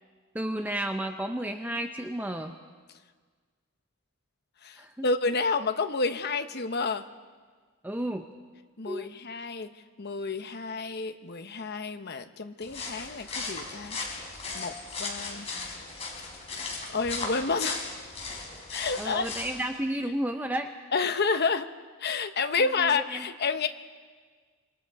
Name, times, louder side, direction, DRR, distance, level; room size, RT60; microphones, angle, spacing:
voice 1, 0.3-2.5 4.8-5.1 7.8-8.2 8.9-9.1 19.0-20.7 22.6-23.3, right 1 dB, 10° right, 5 dB, 0.7 m, -32 dB
voice 2, 4.6-7.0 8.8-9.7 10.0-14.0 14.5-14.7 15.0-15.7 16.9-17.8 18.7-19.3 20.9-21.7 22.0-23.7, left 4 dB, 50° left, 8 dB, 1.0 m, -29 dB
sound 1, 12.6-19.6, left 4 dB, 30° left, 4.6 m, -37 dB
26.5 x 24.0 x 4.8 m, 1.5 s
head